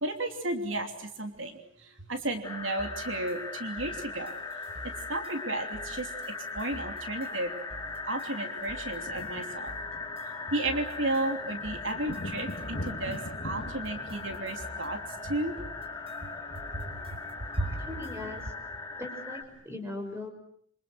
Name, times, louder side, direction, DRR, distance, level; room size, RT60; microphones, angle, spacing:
voice 1, 0.0-4.4 4.8-7.5 8.1-9.7 10.5-15.5 16.2-16.3 16.7-17.0 17.6-17.8, right 2 dB, 75° right, 5 dB, 3.1 m, -33 dB
sound 1, 2.4-19.4, left 3 dB, 20° left, 3.1 m, -39 dB
sound 2, 2.8-18.5, equal, 30° right, 5.2 m, -50 dB
sound 3, 3.8-5.4 6.7-6.8 7.0-7.2 7.5-19.6, left 1 dB, 60° left, 2.3 m, -45 dB
voice 2, 17.6-18.4 19.0-20.3, left 2 dB, 15° right, 6 dB, 5.4 m, -39 dB
27.5 x 26.0 x 7.8 m, 0.67 s
head